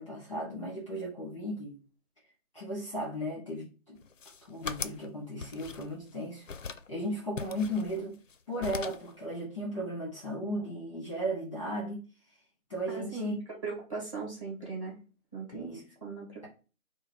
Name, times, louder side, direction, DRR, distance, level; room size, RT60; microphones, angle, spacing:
voice 1, 0.0-1.8 2.5-4.0 4.5-6.4 6.9-8.1 8.5-12.0 12.7-13.4 15.5-15.8, equal, 20° left, 1.3 m, -35 dB
sound 1, 4.0-5.1 5.4-6.1 6.5-6.9 7.4-8.3 8.6-9.1, left 5 dB, 65° left, 0.6 m, -40 dB
voice 2, 12.9-13.3 13.6-15.0 15.3-16.5, right 4 dB, 25° right, 2.0 m, -39 dB
4.8 x 2.2 x 4.5 m
figure-of-eight pair, 165°, 42 cm